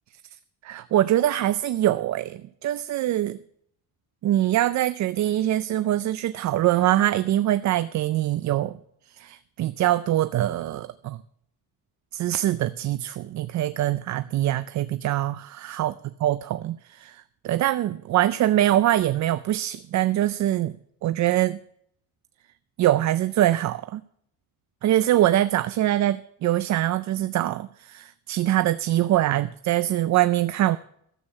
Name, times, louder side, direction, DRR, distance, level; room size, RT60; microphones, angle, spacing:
voice 1, 0.6-3.4 4.2-8.8 9.1-11.2 12.1-15.9 16.2-20.7 21.0-21.6 22.8-24.0 24.8-30.8, right 13 dB, 50° right, 14 dB, 0.4 m, -23 dB
13.0 x 8.0 x 6.6 m, 0.69 s
cardioid pair, 160°, 36 cm